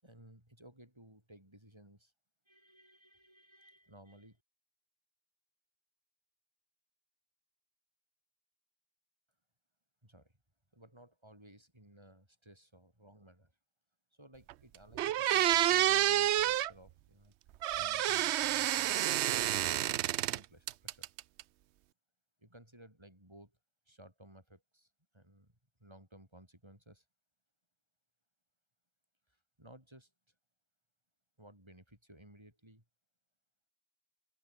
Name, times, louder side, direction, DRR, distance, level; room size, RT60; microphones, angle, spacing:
voice 1, 0.0-2.1 2.5-4.4 10.0-10.3 10.7-13.5 14.1-17.3 17.8-19.2 19.8-21.1 22.4-23.6 23.9-27.1 29.3-30.3 31.4-32.8, right 1 dB, 20° right, 7.3 m, -58 dB
sound 1, 14.5-14.6 15.0-16.7 17.6-20.4 20.7-21.4, right 12 dB, 65° right, 0.8 m, -29 dB
open air
omnidirectional pair, 1.3 m